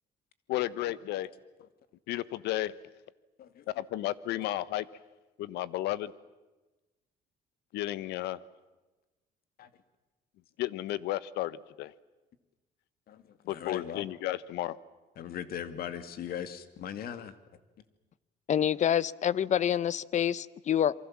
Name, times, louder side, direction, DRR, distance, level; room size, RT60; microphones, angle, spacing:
voice 1, 0.5-1.3 2.1-2.7 3.7-4.8 5.4-6.1 7.7-8.4 10.6-11.9 13.5-14.7, left 15 dB, 85° left, 17 dB, 1.1 m, -33 dB
voice 2, 3.4-3.8 4.4-4.5 9.6-9.7 13.1-14.1 15.2-17.3, left 9 dB, 65° left, 11 dB, 2.3 m, -40 dB
voice 3, 18.5-20.9, left 9 dB, 45° left, 20 dB, 0.8 m, -27 dB
27.5 x 24.0 x 7.4 m, 1.1 s
cardioid pair, 110°, 17 cm